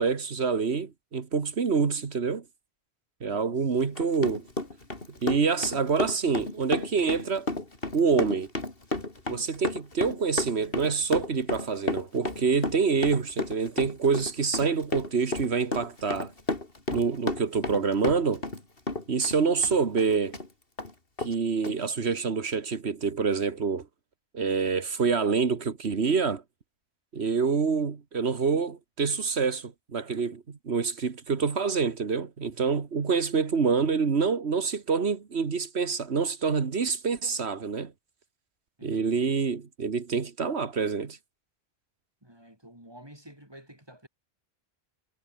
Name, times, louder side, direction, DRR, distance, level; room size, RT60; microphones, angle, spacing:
voice 1, 0.0-2.4 3.2-4.4 5.2-7.5 7.9-8.5 9.3-16.3 16.9-18.4 19.1-20.4 21.2-23.9 24.3-26.4 27.1-37.9 38.8-41.2, right 5 dB, 90° right, 1.9 m, -26 dB
Run, 3.8-18.6 18.9-20.5 20.8-20.9 21.2-21.3 21.6-21.8, left 2 dB, 65° left, 3.9 m, -32 dB
voice 2, 38.8-39.2 42.2-44.1, right 1 dB, 25° right, 7.1 m, -50 dB
omnidirectional pair, 1.1 m